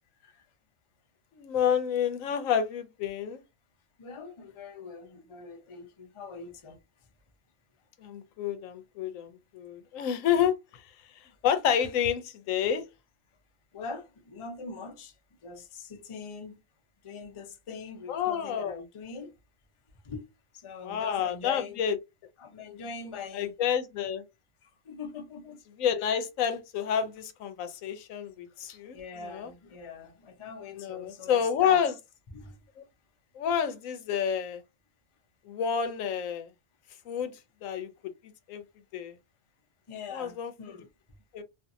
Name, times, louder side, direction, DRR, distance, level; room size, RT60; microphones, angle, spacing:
voice 1, 1.3-3.4 8.0-10.8 11.4-12.8 18.1-18.8 20.8-22.0 23.3-24.2 25.8-29.5 30.8-32.0 32.8-32.9 33.4-34.6 35.5-36.5 37.1-37.3 37.6-37.9 38.5-38.6 38.9-39.1 40.1-40.5 41.3-41.4, left 8 dB, 85° left, 1.0 m, -29 dB
voice 2, 4.0-6.8 13.7-15.1 15.4-16.6 17.0-19.3 20.0-20.3 20.5-21.8 22.4-23.5 24.6-25.6 28.7-31.8 32.3-32.6 39.9-40.9, left 4 dB, 40° left, 0.4 m, -42 dB
2.6 x 2.5 x 2.5 m
omnidirectional pair, 1.3 m